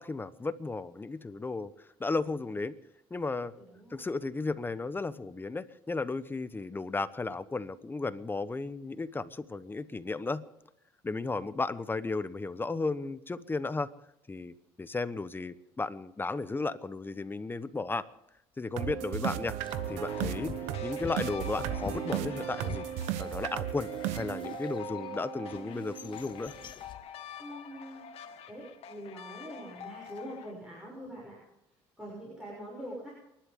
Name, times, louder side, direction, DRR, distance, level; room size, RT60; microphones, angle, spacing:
voice 1, 0.0-2.7 3.1-3.5 3.9-10.4 11.0-13.9 14.3-18.0 18.6-19.5 19.9-20.5 20.8-22.8 23.2-26.5, left 3 dB, 20° left, 14 dB, 1.0 m, -34 dB
voice 2, 3.6-4.0 27.4-28.0 28.5-31.4 32.0-33.1, equal, 5° right, -5 dB, 6.9 m, -44 dB
sound 1, 18.7-26.7, right 11 dB, 85° right, 1.1 m, -36 dB
sound 2, 19.6-25.0 25.5-27.1, left 8 dB, 45° left, 1.1 m, -46 dB
sound 3, 19.7-30.5, left 9 dB, 65° left, 1.9 m, -47 dB
29.5 x 11.5 x 3.7 m, 0.85 s
supercardioid pair, 90°, 11 cm